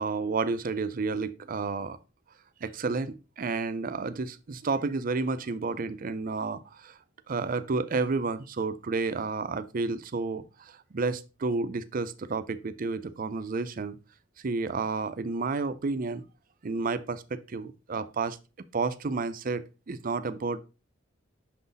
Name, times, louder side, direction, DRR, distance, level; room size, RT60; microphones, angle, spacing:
voice 1, 0.0-2.0 2.6-7.0 7.3-14.0 14.4-16.2 16.6-18.4 18.7-20.6, right 4 dB, 45° right, 0.5 m, -31 dB
6.3 x 3.9 x 3.9 m
head